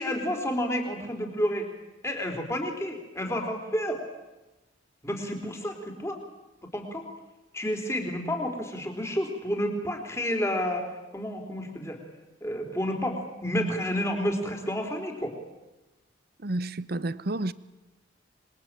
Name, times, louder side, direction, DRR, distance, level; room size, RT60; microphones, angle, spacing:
voice 1, 0.0-1.7 2.0-4.0 5.0-6.2 6.7-7.1 7.5-12.0 12.4-15.4, equal, 15° left, 3.8 m, -30 dB
voice 2, 16.4-17.5, right 2 dB, 50° right, 0.9 m, -30 dB
26.5 x 21.5 x 9.0 m
head